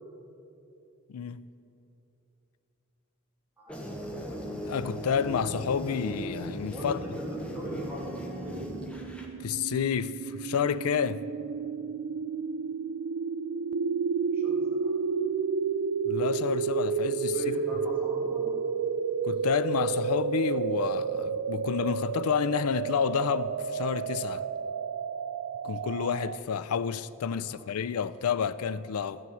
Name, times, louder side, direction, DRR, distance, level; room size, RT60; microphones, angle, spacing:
voice 1, 1.1-1.4 4.6-7.0 9.4-11.2 16.0-17.4 19.2-24.4 25.6-29.2, left 7 dB, 85° left, 0.4 m, -29 dB
sound 1, 3.7-9.2, equal, 5° left, 1.0 m, -38 dB
voice 2, 6.7-8.1 8.4-8.6 14.3-14.9 17.3-18.6 27.4-27.6, equal, 10° right, 2.2 m, -39 dB
sound 2, 7.2-26.4, right 6 dB, 65° right, 0.3 m, -31 dB
13.5 x 7.2 x 6.2 m
head